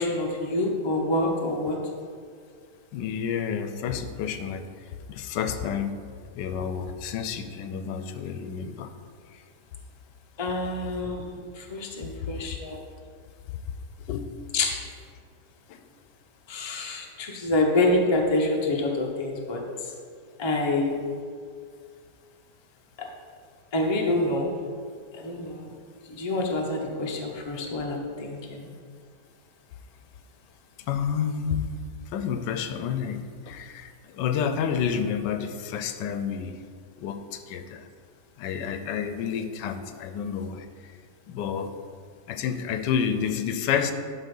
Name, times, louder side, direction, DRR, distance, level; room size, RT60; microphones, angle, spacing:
voice 1, 0.0-1.8 10.4-12.8 14.5-14.7 16.5-19.7 20.4-21.0 23.0-23.1 23.7-24.5 25.1-25.7 26.1-28.7, left 2 dB, 25° left, 1 dB, 0.6 m, -27 dB
voice 2, 2.9-6.0 6.3-8.9 9.3-9.4 14.1-14.3 15.7-15.8 30.8-31.7 32.1-36.6 37.0-37.9 38.4-41.0 41.3-41.7 42.3-43.9, left 7 dB, 85° left, 9 dB, 1.2 m, -30 dB
11.5 x 3.9 x 5.4 m, 2.1 s
omnidirectional pair, 1.9 m